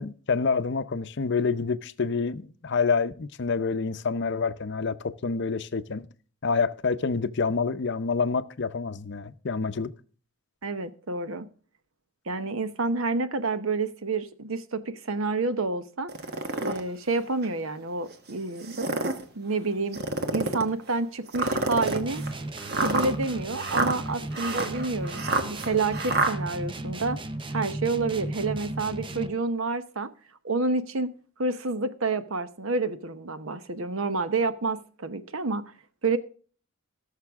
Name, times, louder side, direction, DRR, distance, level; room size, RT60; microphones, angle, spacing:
voice 1, 0.0-6.1 6.4-9.9, left 4 dB, 55° left, 0.6 m, -27 dB
voice 2, 10.6-11.5 12.3-16.1 16.6-18.8 19.3-20.0 20.3-22.2 22.8-27.2 27.5-30.1 30.4-31.1 31.4-35.6 36.0-36.2, right 3 dB, 70° right, 0.9 m, -29 dB
sound 1, 16.1-16.8 17.4-17.5 18.6-19.2 19.9-20.7 21.3-26.3, right 2 dB, 50° right, 1.3 m, -28 dB
sound 2, 21.8-29.5, right 2 dB, 25° right, 0.6 m, -35 dB
17.5 x 6.7 x 3.5 m
head